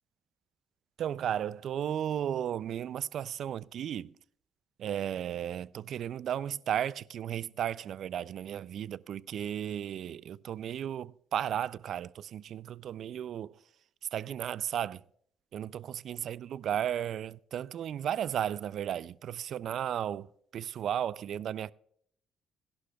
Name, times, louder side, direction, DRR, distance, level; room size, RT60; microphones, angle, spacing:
voice 1, 1.0-4.1 4.8-13.6 14.1-15.0 15.5-21.7, right 10 dB, 65° right, 0.3 m, -34 dB
17.5 x 11.5 x 2.3 m
cardioid pair, 90°, 0 cm